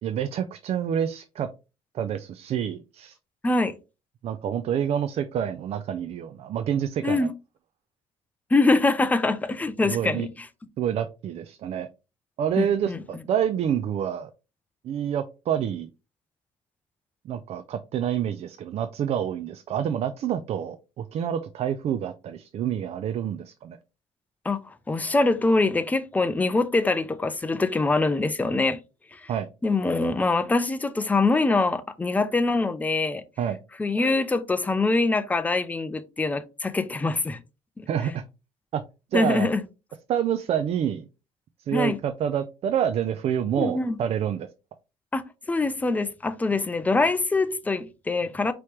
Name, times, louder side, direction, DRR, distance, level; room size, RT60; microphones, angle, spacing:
voice 1, 0.0-1.5 1.9-3.2 4.2-7.3 9.8-10.3 10.8-11.9 12.4-14.3 14.8-15.9 17.2-23.8 29.3-29.5 33.4-33.6 37.9-38.2 38.7-38.8 39.1-39.5 40.1-41.1 41.6-44.5, right 9 dB, 50° right, 0.4 m, -27 dB
voice 2, 8.5-10.3 12.6-13.0 24.5-28.8 29.1-29.2 29.6-33.2 33.8-37.4 37.8-37.9 39.1-39.6 41.7-42.0 43.6-44.0 45.1-45.2 45.5-48.5, left 3 dB, 10° left, 0.4 m, -24 dB
4.9 x 3.0 x 3.1 m
cardioid pair, 120°, 14 cm